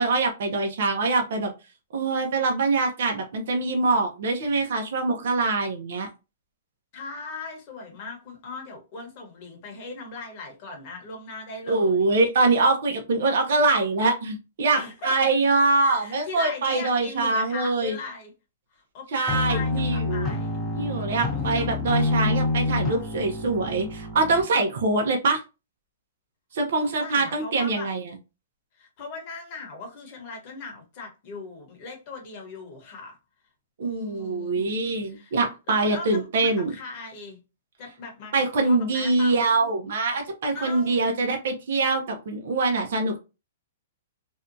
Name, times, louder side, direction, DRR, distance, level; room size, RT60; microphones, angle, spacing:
voice 1, 0.0-1.5 1.9-6.1 11.7-18.0 19.1-20.3 20.7-25.4 26.5-28.1 33.8-36.7 38.3-43.2, right 3 dB, 60° right, 0.6 m, -24 dB
voice 2, 6.9-12.1 14.7-15.2 15.8-18.3 18.7-20.6 21.3-21.7 26.8-27.9 28.8-33.2 33.8-34.7 35.1-35.3 35.7-37.4 37.8-38.3 38.6-39.4 40.5-41.2, left 3 dB, 35° left, 1.0 m, -39 dB
sound 1, 19.3-24.4, left 3 dB, 10° left, 0.6 m, -27 dB
2.6 x 2.2 x 2.5 m
hypercardioid pair, 160°, 0 cm